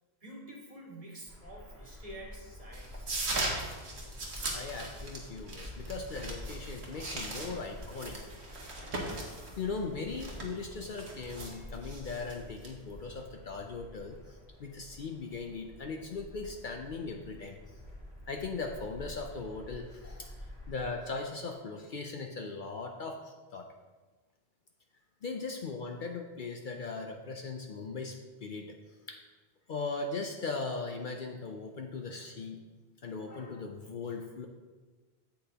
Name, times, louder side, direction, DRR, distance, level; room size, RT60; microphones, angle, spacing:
voice 1, 0.2-3.2 3.5-3.8, right 1 dB, 35° right, -2 dB, 1.6 m, -48 dB
sound 1, 1.3-20.9, left 1 dB, 25° left, 2.7 m, -48 dB
sound 2, 2.7-13.0, right 2 dB, 85° right, 1.6 m, -40 dB
voice 2, 4.4-8.2 9.6-17.6 18.3-20.3 20.7-23.7 25.2-28.7 29.1-29.2 29.7-32.6 33.0-34.5, left 4 dB, 55° left, 3 dB, 0.7 m, -39 dB
8.5 x 8.0 x 2.8 m, 1.3 s
omnidirectional pair, 1.1 m